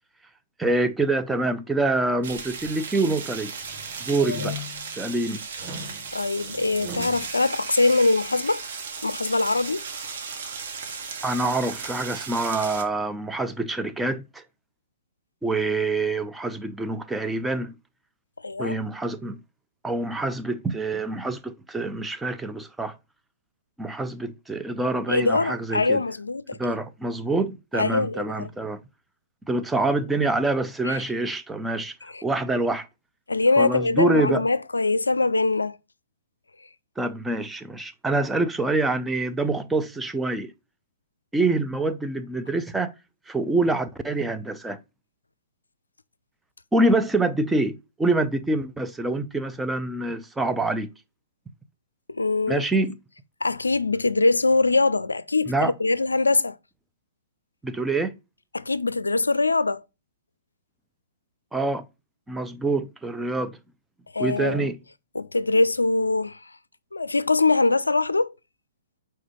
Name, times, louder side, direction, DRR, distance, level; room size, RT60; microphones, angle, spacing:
voice 1, 0.6-3.5 4.0-4.6 4.9-5.4 11.2-14.4 15.4-17.7 18.6-19.4 19.8-23.0 23.8-26.0 26.5-28.8 29.5-32.0 32.2-32.9 33.6-34.4 37.0-40.5 41.3-42.9 43.3-44.8 46.7-50.9 52.5-53.0 55.5-55.7 57.6-58.2 61.5-61.9 62.3-63.6 64.2-64.8, right 2 dB, 5° right, 0.5 m, -26 dB
sound 1, 2.2-12.8, right 5 dB, 55° right, 1.4 m, -36 dB
sound 2, 2.3-2.8 3.3-5.0 5.5-7.3, left 2 dB, 30° right, 1.3 m, -39 dB
voice 2, 4.2-4.5 6.1-8.6 9.0-9.9 18.4-18.8 25.1-26.6 27.7-28.5 30.8-31.0 32.0-32.2 33.3-35.8 52.1-52.6 53.4-56.6 58.5-59.8 64.1-64.7 65.1-66.4 66.9-68.3, left 3 dB, 80° left, 0.4 m, -23 dB
4.9 x 4.4 x 5.0 m
figure-of-eight pair, 115°, 0 cm